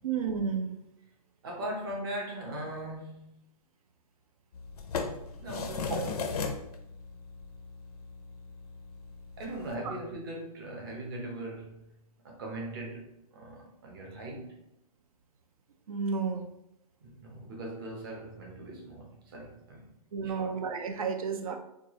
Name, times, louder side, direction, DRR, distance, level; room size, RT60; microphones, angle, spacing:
voice 1, 0.0-0.8 5.9-6.1 9.8-10.0 15.9-16.5 20.1-21.6, right 5 dB, 65° right, 6 dB, 0.6 m, -32 dB
voice 2, 1.4-3.3 5.4-6.4 9.4-11.9 12.2-14.6 17.0-19.9 20.2-20.6, right 1 dB, 35° right, 0 dB, 0.8 m, -40 dB
sound 1, 4.5-9.7, left 5 dB, 80° left, 0.6 m, -38 dB
4.4 x 2.3 x 3.0 m, 0.83 s
hypercardioid pair, 170°, 19 cm